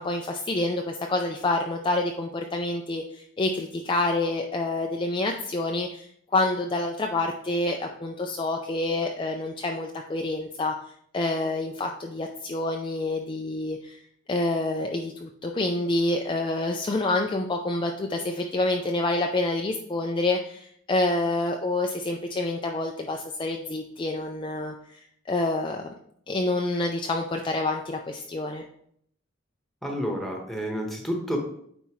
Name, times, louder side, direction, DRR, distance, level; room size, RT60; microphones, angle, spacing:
voice 1, 0.0-10.7 11.1-14.0 14.3-25.0 25.3-25.9 26.3-28.6, left 2 dB, 25° left, 2 dB, 0.4 m, -27 dB
voice 2, 29.8-31.4, equal, ahead, 1 dB, 1.3 m, -30 dB
9.2 x 4.4 x 3.1 m, 0.67 s
head